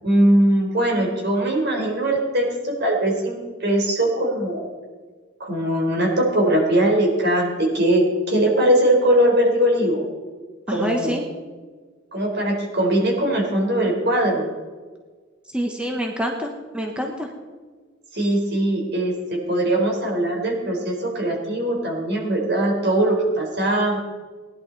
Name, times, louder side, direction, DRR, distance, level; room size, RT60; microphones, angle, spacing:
voice 1, 0.0-4.6 5.4-10.1 10.7-11.2 12.1-14.4 18.1-24.0, right 1 dB, 55° right, -1 dB, 4.0 m, -21 dB
voice 2, 10.7-11.3 15.5-17.3, equal, 5° right, 1 dB, 1.0 m, -26 dB
19.0 x 11.0 x 4.0 m, 1.4 s
head